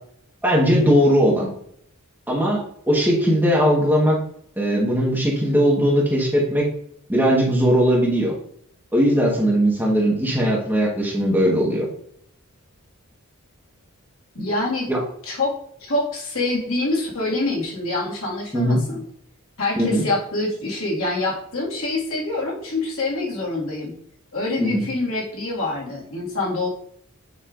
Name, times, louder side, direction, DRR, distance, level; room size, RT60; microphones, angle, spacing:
voice 1, 0.4-1.5 2.3-4.2 4.6-6.7 7.1-8.3 8.9-11.9 14.9-15.0 18.5-18.8 19.8-20.0 24.6-24.8, equal, 10° right, -4 dB, 1.3 m, -19 dB
voice 2, 14.4-14.9 15.2-19.0 19.6-23.9 24.3-26.7, left 2 dB, 70° left, -4 dB, 2.0 m, -25 dB
7.0 x 5.5 x 2.5 m, 0.67 s
head